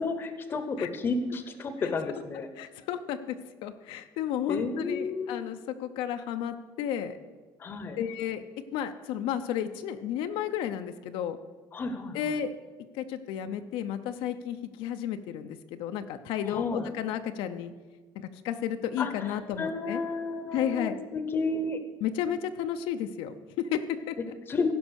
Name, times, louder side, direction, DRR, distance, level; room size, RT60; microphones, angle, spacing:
voice 1, 0.0-2.5 4.5-5.4 7.6-8.0 11.7-12.2 16.5-16.9 19.0-19.1 19.6-21.8 24.5-24.7, left 3 dB, 25° left, 9 dB, 0.8 m, -31 dB
voice 2, 1.8-2.2 2.6-3.4 3.6-7.2 8.0-8.4 8.7-11.4 12.1-12.5 12.9-17.7 18.2-20.0 20.5-21.0 22.0-24.3, left 9 dB, 80° left, 8 dB, 0.6 m, -32 dB
16.0 x 5.4 x 6.3 m, 1.3 s
cardioid pair, 180°, 9 cm